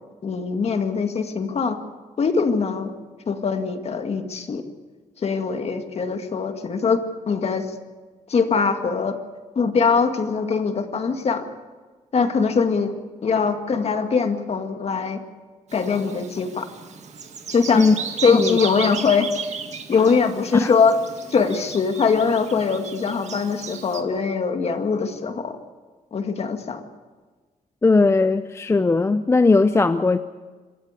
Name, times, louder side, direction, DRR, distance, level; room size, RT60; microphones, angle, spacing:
voice 1, 0.2-1.8 2.2-2.9 3.3-4.6 5.2-7.0 7.3-7.7 8.3-9.2 9.6-11.4 12.1-12.9 13.2-15.2 15.7-16.7 17.5-17.8 18.2-19.3 19.9-20.9 21.3-25.6 26.1-26.8, left 5 dB, 45° left, 7 dB, 2.0 m, -22 dB
Bird vocalization bird call bird song, 15.7-24.0, right 6 dB, 55° right, 2.1 m, -35 dB
voice 2, 27.8-30.2, left 3 dB, 20° left, 11 dB, 0.5 m, -18 dB
26.0 x 13.5 x 8.3 m, 1.4 s
cardioid pair, 125°, 14 cm